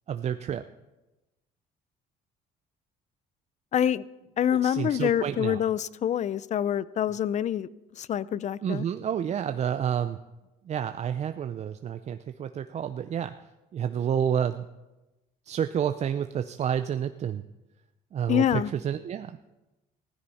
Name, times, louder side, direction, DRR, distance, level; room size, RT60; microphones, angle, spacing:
voice 1, 0.1-0.6 4.6-5.6 8.6-10.2 10.7-13.3 13.7-14.6 15.5-17.4 18.1-19.4, right 9 dB, 40° right, 9 dB, 0.5 m, -29 dB
voice 2, 3.7-4.1 4.4-7.7 8.0-8.9 18.3-18.7, left 10 dB, 45° left, 19 dB, 0.5 m, -26 dB
16.0 x 14.0 x 4.2 m, 1.0 s
cardioid pair, 110°, 17 cm